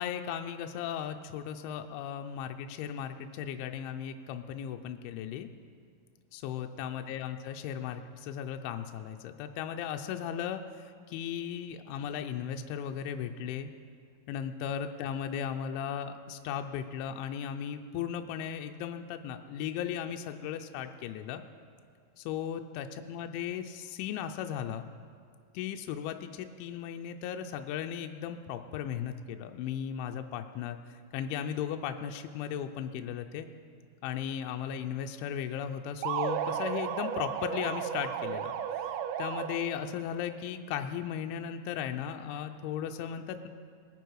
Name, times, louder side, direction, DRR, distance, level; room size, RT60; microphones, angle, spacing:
voice 1, 0.0-5.5 6.3-13.7 14.3-21.4 22.2-24.9 25.5-33.5 34.0-38.5 38.8-38.9 39.2-43.5, left 9 dB, 80° left, 6 dB, 2.8 m, -36 dB
sound 1, 36.0-39.9, right 9 dB, 85° right, 2.6 m, -34 dB
22.0 x 10.0 x 4.7 m, 2.2 s
omnidirectional pair, 5.7 m